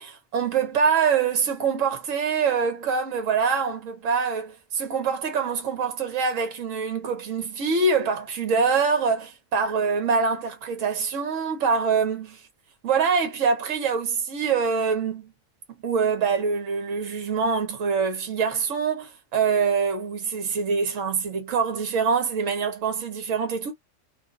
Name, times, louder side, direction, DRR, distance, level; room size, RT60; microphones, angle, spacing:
voice 1, 0.0-12.4 12.8-15.3 15.7-23.7, right 5 dB, 70° right, 1.3 m, -24 dB
2.6 x 2.6 x 3.8 m
omnidirectional pair, 1.4 m